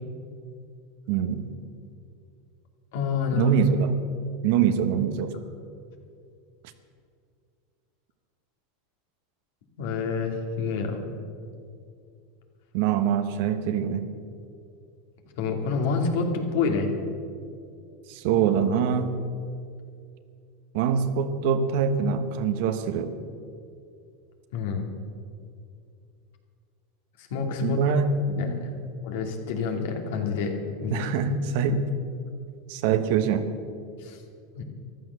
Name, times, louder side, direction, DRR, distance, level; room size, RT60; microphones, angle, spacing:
voice 1, 1.1-1.5 3.3-3.9 4.4-5.4 12.7-14.1 18.1-19.1 20.7-23.1 27.6-28.9 30.9-31.8 32.7-33.5, right 7 dB, 65° right, 9 dB, 1.2 m, -24 dB
voice 2, 2.9-3.5 9.8-11.0 15.4-16.9 24.5-24.9 27.3-27.8 28.3-28.7 29.0-30.9 34.0-34.2 34.5-34.6, left 5 dB, 75° left, 3 dB, 2.4 m, -28 dB
14.5 x 11.0 x 6.9 m, 2.4 s
supercardioid pair, 120°, 0 cm